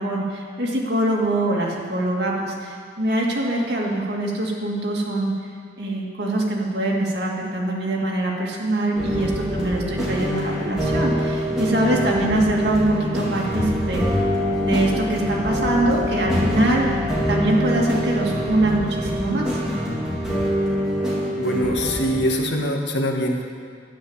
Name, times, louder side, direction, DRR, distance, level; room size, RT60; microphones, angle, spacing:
voice 1, 0.0-5.3 5.8-14.0 14.6-17.0 17.3-19.6, right 1 dB, 60° right, -3 dB, 2.5 m, -23 dB
sound 1, 9.0-22.2, equal, 5° right, 3.2 m, -25 dB
voice 2, 21.4-23.4, equal, 75° left, 2 dB, 1.7 m, -23 dB
12.5 x 10.5 x 7.3 m, 2.1 s
head